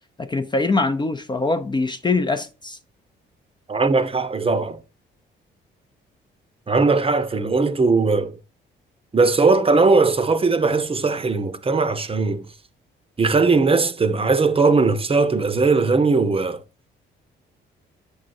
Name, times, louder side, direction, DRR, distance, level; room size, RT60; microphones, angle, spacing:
voice 1, 0.2-2.8, left 3 dB, 25° left, 0.6 m, -23 dB
voice 2, 3.7-4.8 6.7-8.4 9.1-12.4 13.2-16.6, right 4 dB, 30° right, 0.8 m, -19 dB
8.5 x 6.3 x 2.6 m
cardioid pair, 90°, 20 cm